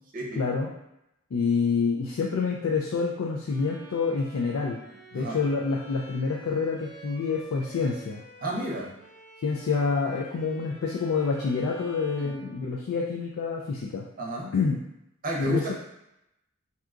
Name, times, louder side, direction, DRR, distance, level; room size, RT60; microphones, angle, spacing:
voice 1, 0.4-0.7 1.3-4.8 5.1-8.2 9.4-14.0 14.5-14.8 15.4-15.7, left 4 dB, 80° left, -2 dB, 0.4 m, -27 dB
Bowed string instrument, 3.5-13.3, right 1 dB, 15° left, 0.9 m, -49 dB
voice 2, 8.4-9.0 12.2-12.3 14.2-14.5 15.2-15.7, right 1 dB, 40° right, -1 dB, 0.6 m, -31 dB
2.8 x 2.3 x 3.6 m, 0.87 s
head